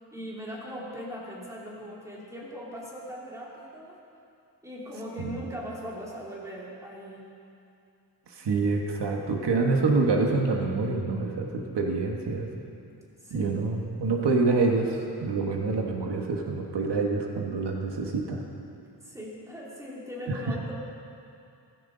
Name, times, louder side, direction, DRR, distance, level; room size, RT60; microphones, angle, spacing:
voice 1, 0.1-4.0 4.6-7.3 13.2-13.5 19.0-20.7, equal, 5° right, -5 dB, 2.9 m, -39 dB
voice 2, 8.3-12.5 13.3-18.4 20.3-20.7, right 3 dB, 80° right, 1 dB, 1.5 m, -26 dB
17.5 x 15.5 x 3.9 m, 2.6 s
wide cardioid pair, 150°, 41 cm